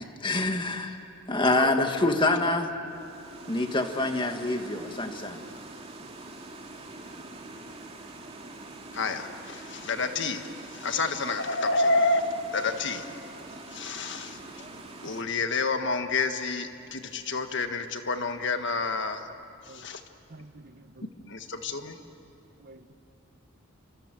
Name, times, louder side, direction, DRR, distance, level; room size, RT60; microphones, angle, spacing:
voice 1, 0.2-1.0 1.3-2.7 3.5-5.4, left 2 dB, 25° left, 5 dB, 1.8 m, -26 dB
voice 2, 1.5-1.9 8.9-13.1 13.7-14.6 15.0-19.3 19.6-20.0 21.3-22.0, left 3 dB, 60° left, 7 dB, 1.6 m, -29 dB
sound 1, 2.9-15.2, right 2 dB, 30° right, 2.4 m, -44 dB
voice 3, 20.3-21.1 22.6-22.9, right 2 dB, 45° right, 11 dB, 0.9 m, -49 dB
29.5 x 26.0 x 7.7 m, 2.7 s
head